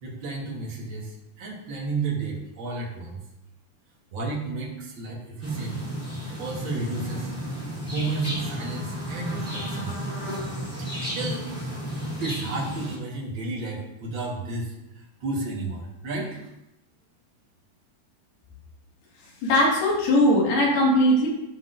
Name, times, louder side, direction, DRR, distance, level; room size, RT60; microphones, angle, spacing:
voice 1, 0.0-3.2 4.1-5.8 6.3-7.3 7.9-10.0 11.1-11.5 12.2-14.7 15.2-16.4, right 3 dB, 65° right, -3 dB, 1.2 m, -32 dB
sound 1, 5.4-13.0, equal, 5° left, 1.9 m, -33 dB
voice 2, 19.4-21.3, left 1 dB, 80° left, -3 dB, 3.9 m, -19 dB
13.0 x 5.8 x 2.6 m, 0.90 s
omnidirectional pair, 4.5 m